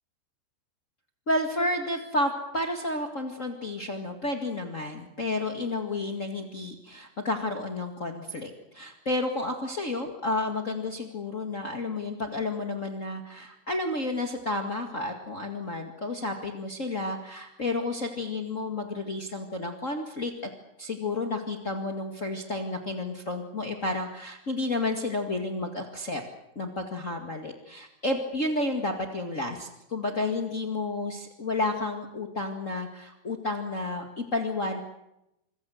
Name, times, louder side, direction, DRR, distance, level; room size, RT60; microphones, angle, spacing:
voice 1, 1.3-20.3 20.8-26.2 26.5-34.8, left 2 dB, 60° left, 4 dB, 0.8 m, -31 dB
26.5 x 24.0 x 6.5 m, 0.86 s
omnidirectional pair, 5.1 m